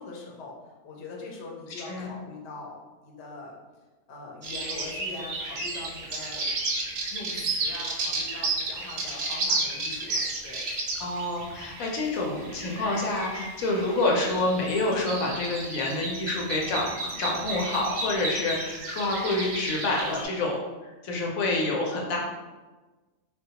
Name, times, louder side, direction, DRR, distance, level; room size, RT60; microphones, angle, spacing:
voice 1, 0.0-3.5 4.1-6.5 7.1-10.7, left 3 dB, 60° left, -1 dB, 0.9 m, -42 dB
sound 1, 4.4-20.2, right 2 dB, 65° right, 0.7 m, -33 dB
voice 2, 11.0-16.9 17.2-22.2, left 2 dB, 80° left, 0 dB, 1.0 m, -28 dB
3.6 x 2.2 x 2.8 m, 1.2 s
omnidirectional pair, 1.4 m